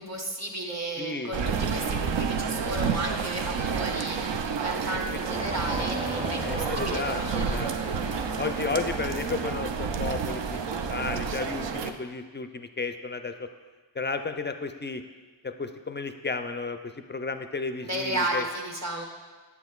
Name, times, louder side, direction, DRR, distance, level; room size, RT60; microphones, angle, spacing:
voice 1, 0.0-8.3 17.8-19.0, right 1 dB, 35° right, 1 dB, 0.9 m, -34 dB
voice 2, 1.0-1.4 4.9-5.2 6.2-7.8 8.4-10.6 10.9-13.5 13.9-15.0 15.4-18.4, left 4 dB, 25° left, 8 dB, 0.3 m, -33 dB
sound 1, 1.3-11.9, right 6 dB, 70° right, 0.5 m, -30 dB
sound 2, 5.3-11.8, equal, 10° right, 0.6 m, -38 dB
8.2 x 7.1 x 2.3 m, 1.3 s
wide cardioid pair, 50°, 46 cm